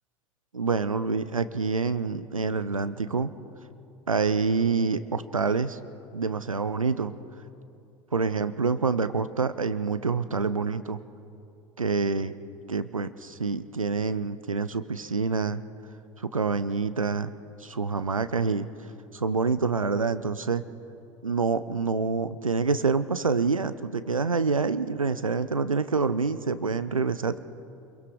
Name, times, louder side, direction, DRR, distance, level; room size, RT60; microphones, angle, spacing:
voice 1, 0.5-3.3 4.1-5.8 6.1-7.1 8.1-11.0 11.8-12.3 12.7-15.6 16.3-17.3 17.6-18.7 19.1-20.6 21.2-27.4, right 4 dB, 90° right, 14 dB, 0.6 m, -27 dB
26.5 x 22.5 x 4.9 m, 2.7 s
figure-of-eight pair, 70°, 17 cm